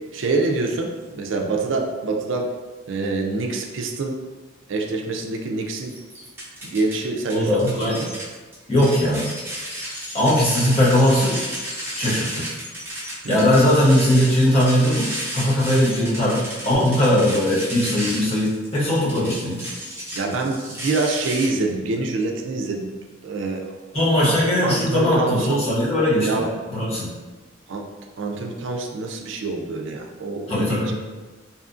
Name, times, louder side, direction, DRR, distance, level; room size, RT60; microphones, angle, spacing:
voice 1, 0.1-2.5 2.9-4.1 4.7-5.9 6.6-8.2 13.2-13.5 15.6-15.7 20.1-22.9 23.2-23.7 24.2-24.3 24.6-25.6 26.2-26.5 27.7-27.9 28.2-31.0, right 3 dB, 65° right, 2 dB, 0.4 m, -26 dB
sound 1, 5.9-7.0 7.3-21.5, equal, 10° right, 0.7 m, -33 dB
voice 2, 7.3-8.0 8.7-9.3 10.1-11.4 11.9-12.5 13.3-19.7 23.9-26.4 26.7-27.1 30.5-30.9, left 1 dB, 30° left, -7 dB, 0.8 m, -19 dB
2.7 x 2.4 x 2.5 m, 1.3 s
head